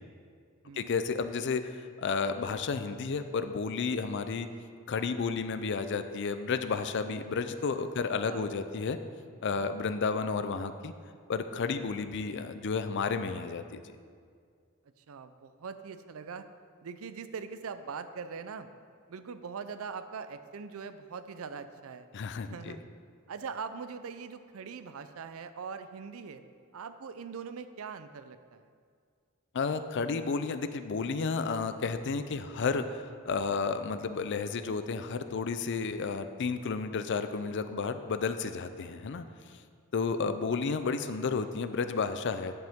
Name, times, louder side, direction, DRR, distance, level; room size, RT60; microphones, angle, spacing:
voice 1, 0.7-4.5 4.9-9.0 9.4-10.9 11.3-13.8 22.1-22.8 29.5-39.3 39.9-42.5, left 4 dB, 55° left, 10 dB, 0.4 m, -32 dB
voice 2, 15.0-16.5 16.8-18.7 19.1-22.1 22.5-22.8 23.3-26.4 26.7-28.7, right 5 dB, 65° right, 11 dB, 0.5 m, -42 dB
10.5 x 7.6 x 3.6 m, 2.1 s
head